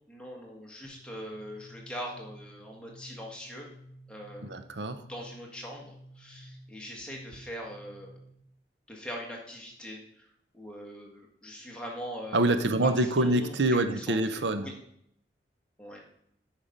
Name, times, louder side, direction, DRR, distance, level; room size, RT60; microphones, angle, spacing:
voice 1, 0.1-3.7 4.1-4.7 5.1-8.1 8.9-10.3 10.5-12.4 12.8-13.5 14.0-14.7 15.8-16.0, equal, 5° left, -2 dB, 1.8 m, -42 dB
sound 1, 0.8-8.4, equal, 50° right, 1.6 m, -52 dB
voice 2, 4.4-5.0 12.3-14.7, right 2 dB, 90° right, 10 dB, 0.7 m, -26 dB
8.7 x 5.8 x 5.3 m, 0.72 s
head